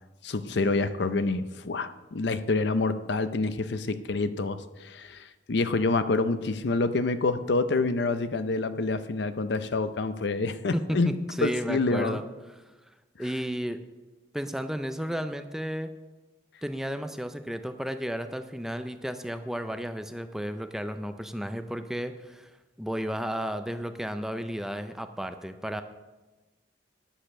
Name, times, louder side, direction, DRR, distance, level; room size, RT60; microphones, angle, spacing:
voice 1, 0.2-11.1 11.4-12.2, left 3 dB, 65° left, 11 dB, 0.6 m, -27 dB
voice 2, 10.7-12.6 13.2-13.8 14.3-15.9 16.6-22.5 22.8-25.8, equal, ahead, 8 dB, 0.4 m, -33 dB
10.0 x 6.6 x 6.2 m, 1.2 s
head